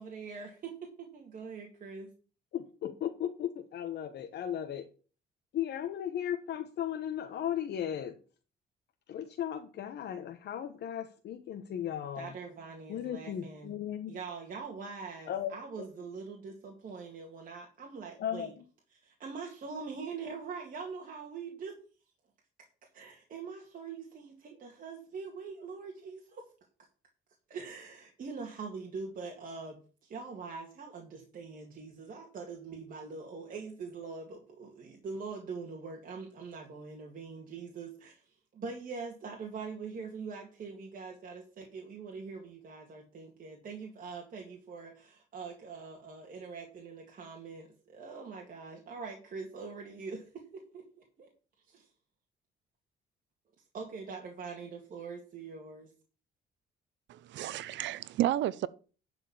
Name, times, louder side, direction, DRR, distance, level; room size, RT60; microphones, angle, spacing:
voice 1, 0.0-2.1 12.2-13.7 14.1-18.5 18.9-21.8 22.8-26.4 27.5-51.3 51.7-51.9 53.7-55.9, right 5 dB, 50° right, 2.1 m, -43 dB
voice 2, 2.5-4.9 5.5-8.2 9.1-12.3 12.9-14.1 15.3-15.5 18.2-18.5, left 10 dB, 70° left, 1.1 m, -36 dB
voice 3, 57.1-58.7, right 13 dB, 80° right, 0.6 m, -31 dB
11.5 x 4.5 x 7.1 m
cardioid pair, 135°, 18 cm